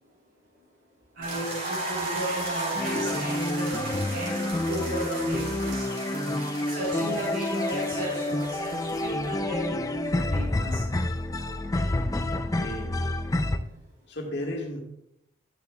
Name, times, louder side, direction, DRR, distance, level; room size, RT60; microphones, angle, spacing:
voice 1, 1.1-5.9 6.6-10.8 13.3-13.7, right 1 dB, 75° right, -7 dB, 3.4 m, -34 dB
sound 1, 1.2-9.3, right 2 dB, 40° right, 2.4 m, -36 dB
sound 2, 2.7-13.6, left 1 dB, 15° left, 0.3 m, -29 dB
Speech / Wind, 8.7-13.2, equal, 15° right, 2.6 m, -50 dB
voice 2, 12.5-12.9 14.1-14.8, left 1 dB, 55° left, 1 dB, 1.6 m, -35 dB
10.5 x 10.5 x 2.2 m, 0.79 s
head